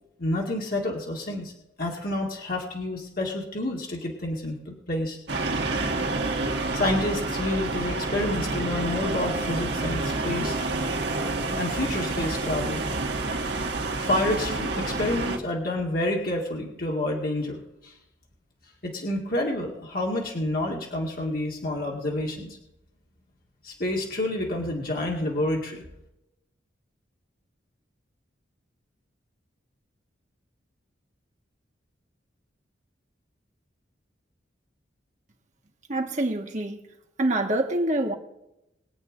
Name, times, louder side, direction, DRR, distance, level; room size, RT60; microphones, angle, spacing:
voice 1, 0.2-1.5 1.8-5.2 6.6-10.6 11.5-12.8 14.0-17.9 18.8-22.6 23.6-25.8, left 1 dB, 50° left, 2.2 m, -29 dB
sound 1, 5.3-15.4, right 2 dB, 65° right, 2.0 m, -28 dB
voice 2, 35.9-36.8 37.2-38.1, right 1 dB, 40° right, 1.6 m, -25 dB
22.5 x 8.2 x 3.9 m
head